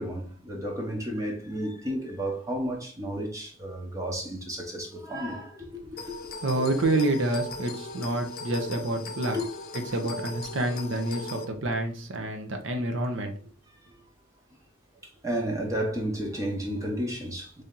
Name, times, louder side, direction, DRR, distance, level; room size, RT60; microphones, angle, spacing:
voice 1, 0.0-5.7 6.2-6.3 9.3-9.4 15.2-17.6, equal, 15° right, 0.8 m, -32 dB
sound 1, 6.0-11.4, left 3 dB, 50° left, 0.6 m, -39 dB
voice 2, 6.4-9.4 9.7-13.4, right 2 dB, 70° right, 0.8 m, -28 dB
3.3 x 2.8 x 3.7 m
head